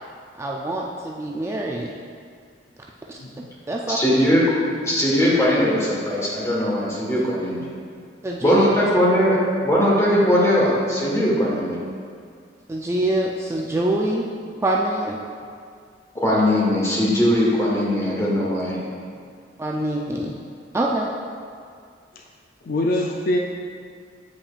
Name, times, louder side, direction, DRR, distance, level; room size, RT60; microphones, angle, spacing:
voice 1, 0.4-1.9 3.1-3.2 3.7-4.0 8.2-8.7 12.7-14.2 14.6-15.2 19.6-20.3 20.7-21.1, right 1 dB, 15° right, -2 dB, 0.3 m, -24 dB
voice 2, 3.2-3.5 7.6-7.7 22.1-22.2 22.6-23.4, left 1 dB, 55° left, 0 dB, 0.4 m, -24 dB
voice 3, 3.9-4.4 4.8-7.6 8.4-11.8 16.1-18.8, equal, 15° left, -6 dB, 1.4 m, -20 dB
8.5 x 5.2 x 2.4 m, 2.1 s
head